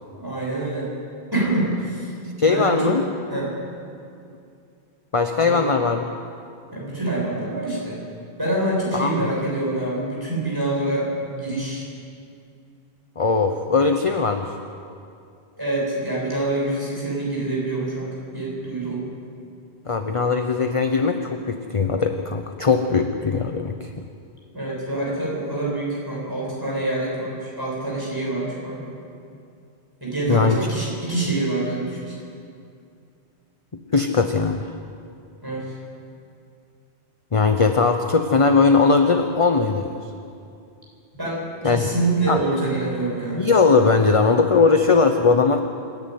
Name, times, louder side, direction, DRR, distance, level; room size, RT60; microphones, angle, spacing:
voice 1, 0.1-0.9 1.3-2.1 2.4-3.0 3.3-3.6 5.4-5.6 6.7-8.0 8.4-11.9 15.6-19.0 24.5-28.9 30.0-32.1 35.4-35.7 41.1-43.5, right 2 dB, 20° right, -5 dB, 7.6 m, -26 dB
voice 2, 2.4-3.0 5.1-6.0 8.9-9.2 13.2-14.5 19.9-24.0 30.3-30.6 33.9-34.7 37.3-40.0 41.6-41.8 42.3-42.4 43.3-45.6, left 4 dB, 30° left, 6 dB, 0.9 m, -19 dB
27.0 x 11.0 x 9.5 m, 2.5 s
omnidirectional pair, 1.1 m